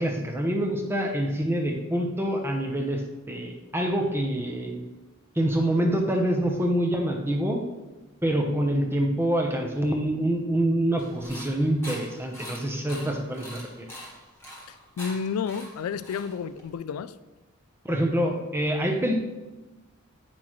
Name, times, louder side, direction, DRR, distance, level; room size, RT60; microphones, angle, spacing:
voice 1, 0.0-3.0 3.3-4.8 5.4-7.6 8.2-13.9 17.9-19.1, right 1 dB, 10° right, 2 dB, 0.8 m, -26 dB
sound 1, 11.0-16.7, equal, 10° left, 1.5 m, -43 dB
voice 2, 14.7-17.1, left 6 dB, 80° left, 13 dB, 0.3 m, -31 dB
8.8 x 6.0 x 3.1 m, 1.1 s
head